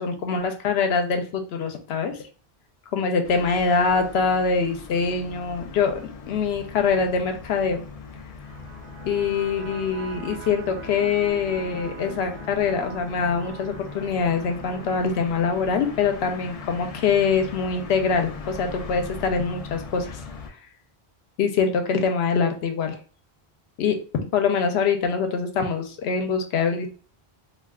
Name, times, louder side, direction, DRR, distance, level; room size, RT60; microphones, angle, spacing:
voice 1, 0.0-2.2 2.9-7.8 9.0-20.2 21.4-23.0 23.8-24.0 24.3-26.9, left 5 dB, 80° left, 6 dB, 0.8 m, -24 dB
sound 1, 3.2-20.5, left 5 dB, 55° left, 0.4 m, -40 dB
sound 2, 8.3-19.3, right 3 dB, 60° right, 0.9 m, -44 dB
2.3 x 2.3 x 3.4 m, 0.38 s
omnidirectional pair, 1.1 m